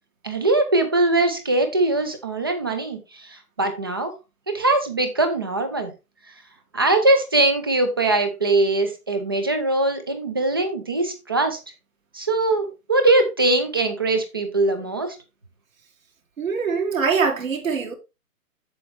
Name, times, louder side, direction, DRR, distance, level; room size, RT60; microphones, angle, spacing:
voice 1, 0.2-3.0 3.6-4.1 4.5-5.9 6.7-11.6 12.1-15.2, right 2 dB, 15° right, 0.6 m, -21 dB
voice 2, 16.4-17.9, right 5 dB, 55° right, 2.5 m, -23 dB
7.7 x 7.5 x 3.3 m
figure-of-eight pair, 140°, 47 cm